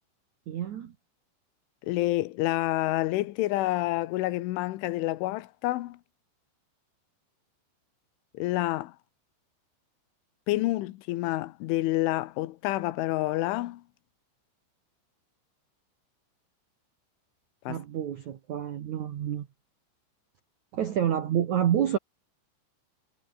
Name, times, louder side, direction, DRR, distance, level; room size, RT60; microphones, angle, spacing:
voice 1, 0.5-0.9 17.7-19.5 20.7-22.0, right 10 dB, 75° right, 1.7 m, -28 dB
voice 2, 1.8-6.0 8.4-8.9 10.5-13.8 17.7-17.8, left 17 dB, 80° left, 3.5 m, -28 dB
omnidirectional pair, 5.6 m